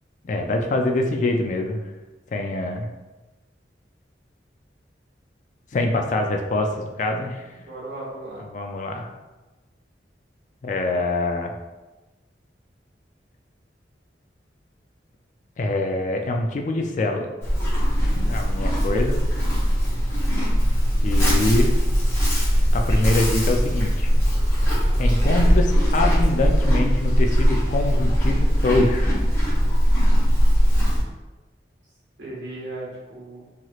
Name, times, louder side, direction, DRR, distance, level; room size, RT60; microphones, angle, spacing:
voice 1, 0.2-1.8 2.3-2.9 5.7-7.4 8.5-9.1 10.6-11.5 15.6-17.3 18.3-19.2 21.0-21.8 22.7-24.1 25.0-29.1, left 2 dB, 45° left, 3 dB, 0.3 m, -24 dB
voice 2, 7.6-8.4 32.2-33.4, right 2 dB, 85° right, -6 dB, 1.3 m, -36 dB
Livestock farm animals working animals, 17.4-31.0, equal, 15° left, 0.8 m, -20 dB
2.9 x 2.9 x 2.3 m, 1.1 s
head